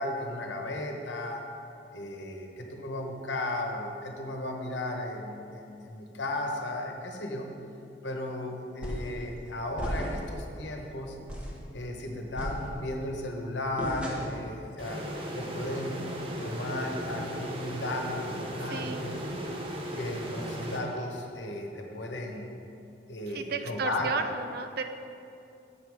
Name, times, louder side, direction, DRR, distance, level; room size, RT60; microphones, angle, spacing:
voice 1, 0.0-1.4 1.9-7.5 8.0-11.2 11.7-15.1 15.3-16.0 16.4-19.2 19.9-22.5 23.1-24.2, left 1 dB, 90° left, 2 dB, 1.0 m, -35 dB
sound 1, 8.8-9.2 9.8-10.4 10.8-10.9 11.3-11.6 12.4-13.0 13.8-14.5, equal, 5° right, 1.1 m, -35 dB
sound 2, 14.8-21.5, right 1 dB, 30° right, 0.8 m, -37 dB
voice 2, 18.7-19.1 23.4-24.8, right 4 dB, 60° right, 7 dB, 0.5 m, -33 dB
7.2 x 7.0 x 4.8 m, 2.7 s
head